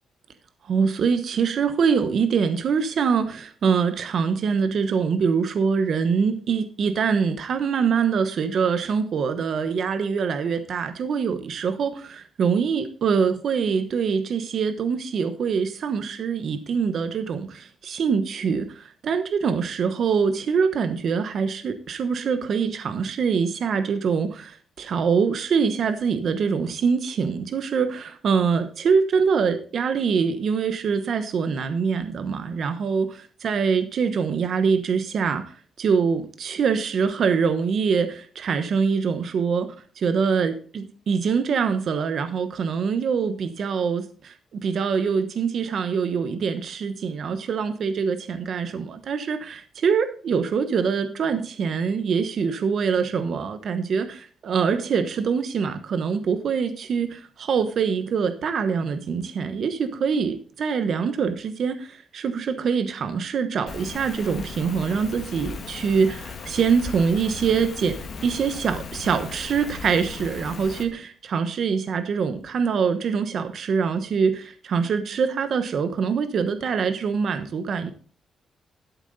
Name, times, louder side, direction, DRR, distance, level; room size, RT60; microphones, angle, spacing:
voice 1, 0.7-33.1 33.4-44.3 44.6-77.9, right 6 dB, 50° right, 10 dB, 1.0 m, -24 dB
Rain, 63.7-70.8, left 5 dB, 45° left, 1.6 m, -37 dB
12.5 x 7.2 x 4.0 m, 0.42 s
cardioid pair, 170°, 0 cm